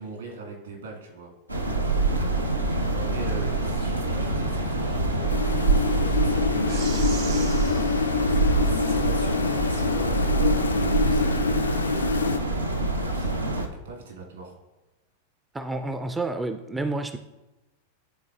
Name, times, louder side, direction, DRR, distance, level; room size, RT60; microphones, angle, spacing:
voice 1, 0.0-1.3 1.9-7.9 8.3-12.3 13.1-14.6, right 3 dB, 65° right, 0 dB, 1.8 m, -40 dB
sound 1, 1.5-13.7, right 2 dB, 85° right, 0.6 m, -25 dB
sound 2, 5.3-12.4, left 5 dB, 75° left, 0.3 m, -26 dB
sound 3, 6.7-9.3, right 6 dB, 50° right, 0.8 m, -41 dB
voice 2, 15.5-17.2, right 2 dB, 10° right, 7 dB, 0.3 m, -29 dB
11.5 x 4.0 x 2.4 m, 1.0 s
figure-of-eight pair, 90°, 0 cm